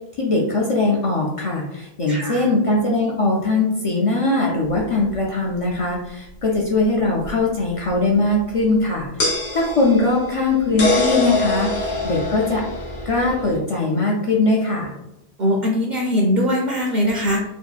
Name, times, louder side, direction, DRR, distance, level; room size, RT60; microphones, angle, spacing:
voice 1, 0.2-12.6 13.1-14.9, left 2 dB, 55° left, -3 dB, 0.4 m, -21 dB
voice 2, 2.1-2.5 15.4-17.4, left 1 dB, 55° right, -3 dB, 0.6 m, -21 dB
sound 1, 4.8-4.9 7.3-7.4 9.2-13.6, left 3 dB, 85° left, 1.0 m, -24 dB
2.7 x 2.5 x 2.3 m, 0.89 s
omnidirectional pair, 1.0 m